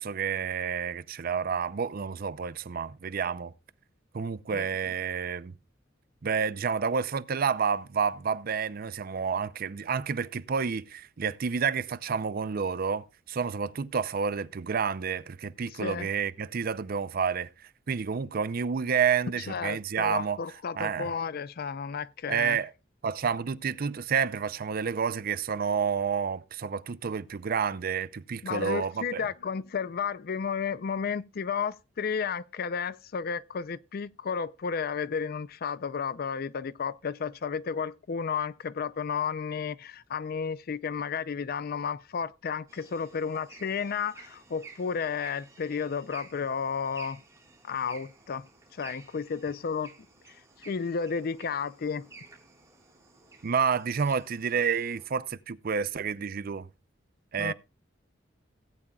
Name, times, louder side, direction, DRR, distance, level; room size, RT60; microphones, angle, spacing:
voice 1, 0.0-3.5 4.1-5.5 6.2-17.5 17.9-20.4 20.8-21.1 22.3-22.7 23.0-29.3 53.4-56.7 57.3-57.5, right 6 dB, 50° right, 0.5 m, -29 dB
voice 2, 15.7-16.1 19.5-22.6 28.4-47.2 47.6-48.5 48.8-49.9 50.3-52.1 57.4-57.5, left 6 dB, 50° left, 0.4 m, -32 dB
sound 1, 42.7-55.1, right 4 dB, 15° right, 3.3 m, -53 dB
17.5 x 8.8 x 2.3 m
head